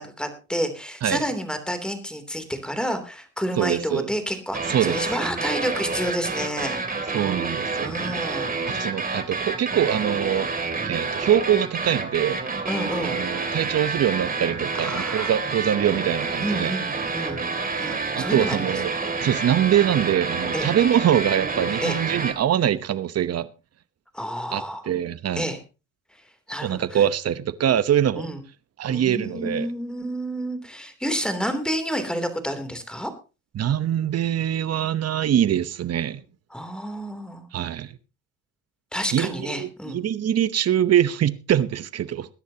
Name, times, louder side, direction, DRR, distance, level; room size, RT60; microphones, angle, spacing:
voice 1, 0.0-7.2 7.8-8.6 12.7-13.2 14.8-15.3 16.4-17.4 17.8-18.8 20.5-20.7 21.8-22.0 24.1-24.9 25.4-25.6 26.1-26.2 26.5-27.0 28.2-28.4 28.9-33.1 36.5-37.5 38.9-40.0, equal, 5° left, 3.1 m, -30 dB
voice 2, 3.6-4.1 4.7-5.0 7.1-8.0 8.7-10.5 10.9-12.4 13.0-16.7 18.2-18.9 19.2-23.5 24.5-25.5 26.6-28.3 28.8-29.7 33.5-36.2 37.5-38.0 39.1-42.3, right 10 dB, 55° right, 1.0 m, -23 dB
sound 1, 4.5-22.3, right 4 dB, 30° right, 2.8 m, -28 dB
21.0 x 10.5 x 2.9 m
cardioid pair, 90°, 30 cm